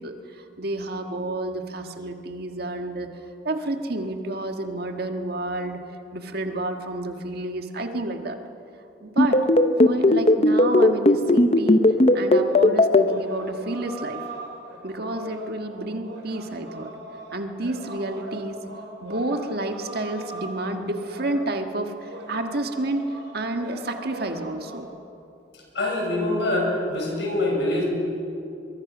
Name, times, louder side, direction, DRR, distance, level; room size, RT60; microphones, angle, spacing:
voice 1, 0.0-8.4 9.0-9.4 9.8-11.9 12.1-14.2 14.8-16.9 17.3-18.6 19.0-24.9, right 2 dB, 55° right, 5 dB, 1.6 m, -30 dB
sound 1, 9.2-13.0, left 2 dB, 35° left, 0.9 m, -15 dB
sound 2, 13.0-24.8, right 1 dB, 75° right, 4.9 m, -40 dB
voice 2, 25.7-27.9, left 1 dB, 70° left, -1 dB, 6.5 m, -24 dB
23.5 x 22.0 x 6.1 m, 2.7 s
head